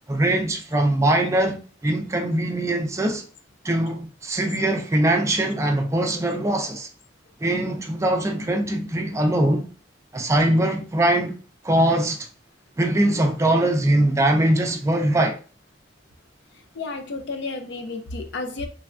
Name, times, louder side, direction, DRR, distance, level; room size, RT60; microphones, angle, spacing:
voice 1, 0.1-1.6 1.8-3.2 3.6-6.9 7.4-9.7 10.1-11.4 11.6-12.3 12.8-15.4, right 1 dB, 15° right, 0.4 m, -22 dB
voice 2, 16.7-18.7, left 3 dB, 65° left, 0.5 m, -31 dB
3.3 x 2.2 x 2.4 m
head